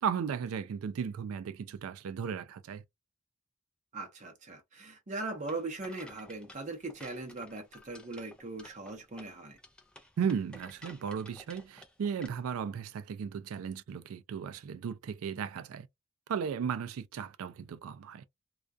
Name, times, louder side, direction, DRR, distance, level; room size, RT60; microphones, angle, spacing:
voice 1, 0.0-2.8 10.2-15.9 16.3-18.2, right 7 dB, 75° right, 0.3 m, -35 dB
voice 2, 3.9-9.6, right 3 dB, 35° right, 0.7 m, -40 dB
sound 1, 5.5-12.3, left 1 dB, 5° left, 0.3 m, -54 dB
2.3 x 2.2 x 2.4 m
head